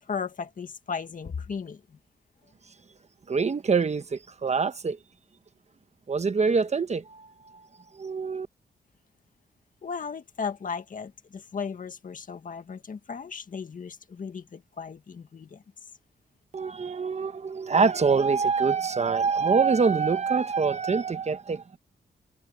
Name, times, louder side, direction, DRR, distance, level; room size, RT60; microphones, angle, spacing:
voice 1, 0.0-2.0 9.8-15.6, left 6 dB, 50° left, 1.8 m, -36 dB
voice 2, 3.3-5.0 6.1-7.3 7.9-8.5 16.5-21.6, right 5 dB, 40° right, 1.1 m, -25 dB
cardioid pair, 105°, 18 cm